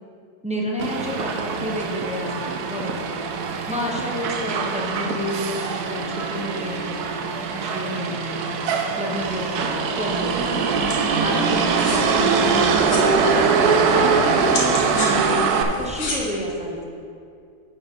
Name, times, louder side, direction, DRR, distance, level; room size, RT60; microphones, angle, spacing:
voice 1, 0.4-3.1 3.7-7.0 7.5-8.5 9.0-10.7 11.2-16.8, equal, 10° right, -2 dB, 0.5 m, -30 dB
Motor vehicle (road), 0.8-15.6, right 5 dB, 80° right, 1.2 m, -22 dB
sound 1, 10.2-16.2, left 2 dB, 60° left, 1.7 m, -34 dB
7.3 x 6.5 x 5.2 m, 2.4 s
omnidirectional pair, 1.7 m